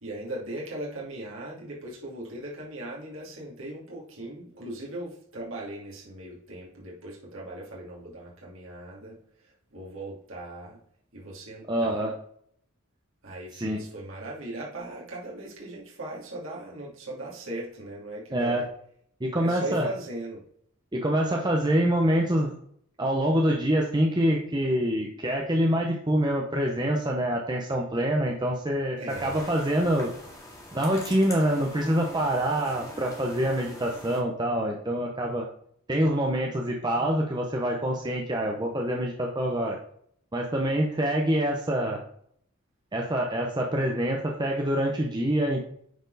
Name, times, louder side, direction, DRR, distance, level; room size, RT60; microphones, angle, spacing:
voice 1, 0.0-9.2 9.7-10.8 11.1-12.0 13.2-18.7 19.4-20.4 29.0-29.5, right 1 dB, 65° right, -4 dB, 2.5 m, -38 dB
voice 2, 11.7-12.1 13.5-13.8 18.3-18.6 19.2-19.9 20.9-22.5 23.0-30.1 30.7-35.5 35.9-39.8 40.3-42.0 42.9-45.6, right 1 dB, 20° right, 0 dB, 0.8 m, -26 dB
sound 1, 29.1-34.2, left 1 dB, 15° left, 2.1 m, -43 dB
9.3 x 4.4 x 4.0 m, 0.65 s
head